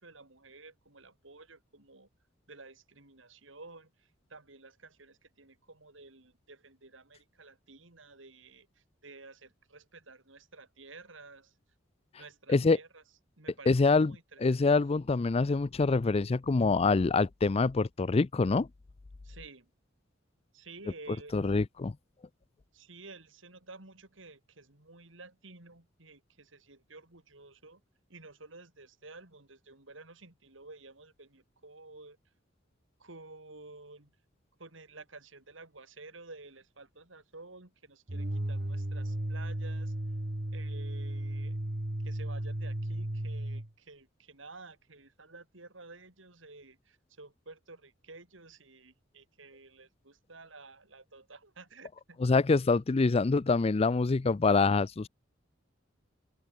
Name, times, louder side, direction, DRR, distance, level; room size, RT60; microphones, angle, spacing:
voice 1, 0.0-2.1 2.5-11.5 12.2-13.0 13.4-14.6 19.2-19.7 20.5-21.4 22.7-27.8 28.1-32.2 33.0-34.1 34.6-39.9 40.5-41.6 42.0-52.2, right 3 dB, 75° right, 4.0 m, -52 dB
voice 2, 13.7-14.1 14.4-18.7 21.3-21.9 52.2-55.1, left 3 dB, 30° left, 0.4 m, -25 dB
sound 1, 38.1-43.7, right 1 dB, 50° right, 1.9 m, -35 dB
open air
head